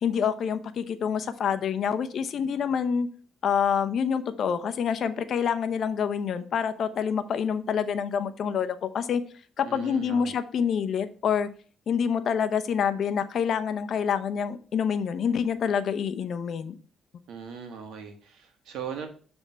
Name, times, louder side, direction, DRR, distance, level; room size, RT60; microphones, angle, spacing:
voice 1, 0.0-3.1 3.4-9.2 9.6-11.5 11.9-16.8, left 7 dB, 65° left, 10 dB, 0.7 m, -27 dB
voice 2, 9.6-10.3 17.3-19.1, right 7 dB, 80° right, 5 dB, 1.4 m, -39 dB
7.4 x 3.5 x 5.4 m, 0.42 s
cardioid pair, 90°, 0 cm